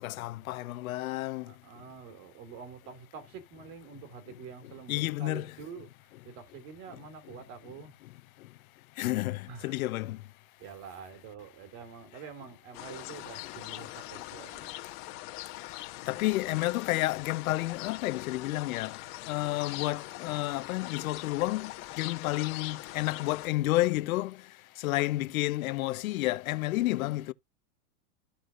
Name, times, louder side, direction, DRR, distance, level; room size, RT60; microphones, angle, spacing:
voice 1, 0.0-1.5 4.9-5.5 9.0-10.2 16.1-19.0 19.2-24.4 24.8-27.3, left 17 dB, 65° left, 0.8 m, -30 dB
voice 2, 1.5-7.9 9.5-9.8 10.6-14.8, right 6 dB, 45° right, 2.5 m, -47 dB
sound 1, 12.7-23.5, left 17 dB, 45° left, 1.4 m, -42 dB
14.0 x 4.8 x 2.5 m
supercardioid pair, 140°, 45 cm